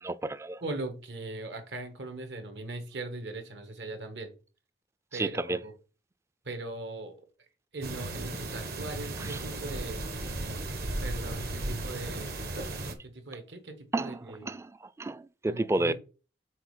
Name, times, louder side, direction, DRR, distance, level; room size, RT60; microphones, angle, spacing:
voice 1, 0.0-0.6 5.1-5.6 9.2-9.4 13.9-14.7 15.0-15.9, right 2 dB, 15° right, 0.3 m, -31 dB
voice 2, 0.6-4.3 5.1-5.7 6.4-7.2 7.7-10.2 11.0-12.3 13.0-14.5 15.4-15.9, right 2 dB, 75° right, 1.6 m, -39 dB
sound 1, 7.8-12.9, right 2 dB, 60° right, 1.2 m, -35 dB
6.5 x 4.2 x 4.9 m
head